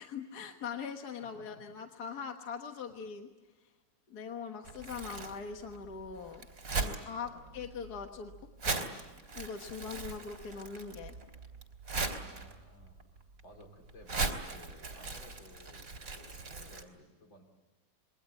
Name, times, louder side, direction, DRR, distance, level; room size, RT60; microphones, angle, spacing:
voice 1, 0.0-3.3 4.1-6.5 6.8-8.3 8.6-8.9 9.3-11.1, left 6 dB, 55° left, 4 dB, 1.9 m, -42 dB
voice 2, 1.1-1.5 6.8-7.7 12.0-17.4, left 1 dB, 85° left, 1 dB, 5.3 m, -57 dB
Crumpling crinkling, 4.6-16.8, right 3 dB, 45° right, 3.1 m, -39 dB
27.0 x 22.0 x 8.6 m, 1.2 s
omnidirectional pair, 2.0 m